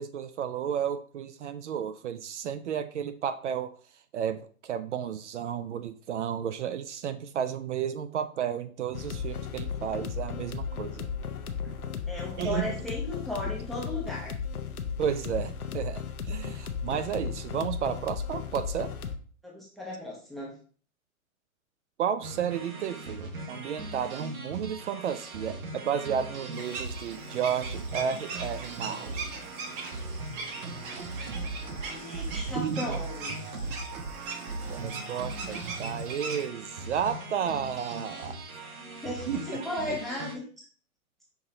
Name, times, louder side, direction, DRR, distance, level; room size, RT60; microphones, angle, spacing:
voice 1, 0.0-3.8 4.1-11.1 11.7-11.8 12.4-12.7 15.0-18.9 22.0-29.1 32.6-32.9 34.7-38.7 39.3-39.4 39.9-40.0, right 8 dB, 55° right, 11 dB, 0.5 m, -32 dB
sound 1, 8.9-19.2, left 6 dB, 85° left, 0.7 m, -35 dB
voice 2, 12.1-14.4 19.4-20.5 31.8-33.7 39.0-40.7, left 2 dB, ahead, -3 dB, 0.5 m, -36 dB
sound 2, 22.2-40.4, right 2 dB, 75° right, 1.1 m, -39 dB
sound 3, 26.5-36.5, right 4 dB, 35° right, 1.0 m, -40 dB
5.8 x 2.8 x 3.0 m, 0.43 s
hypercardioid pair, 120°, 43 cm